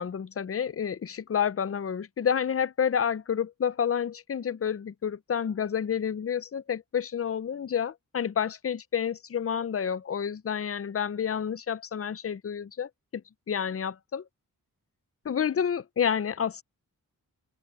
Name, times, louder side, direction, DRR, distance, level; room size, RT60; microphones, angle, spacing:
voice 1, 0.0-13.2 13.5-14.2 15.2-16.6, left 8 dB, 40° left, 0.5 m, -29 dB
open air
wide cardioid pair, 90°, 35 cm